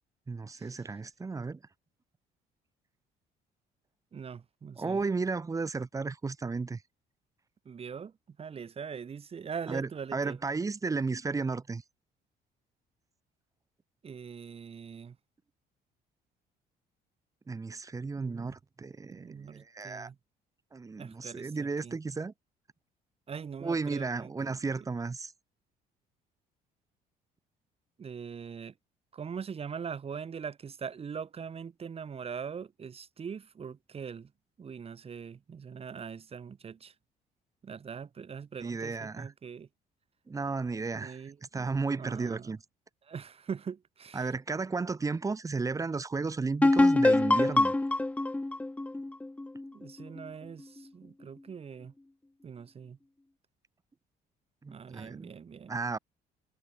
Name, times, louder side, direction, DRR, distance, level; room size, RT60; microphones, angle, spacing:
voice 1, 0.3-1.6 4.8-6.8 9.7-11.8 17.5-20.1 20.7-22.3 23.6-25.3 38.6-39.3 40.3-41.2 41.5-42.6 44.1-47.8 54.6-55.3 55.7-56.0, right 4 dB, 20° right, 1.0 m, -33 dB
voice 2, 4.1-5.0 7.7-8.1 8.4-10.4 14.0-15.2 18.2-18.6 19.1-20.2 21.0-22.0 23.3-24.6 28.0-28.7 29.1-34.3 34.6-36.9 37.6-39.7 40.9-41.7 42.0-42.6 43.1-44.3 49.6-51.9 52.4-53.0 54.7-55.8, right 6 dB, 35° right, 2.5 m, -42 dB
sound 1, 46.6-50.2, left 2 dB, 10° left, 0.6 m, -25 dB
cardioid pair, 110°, 17 cm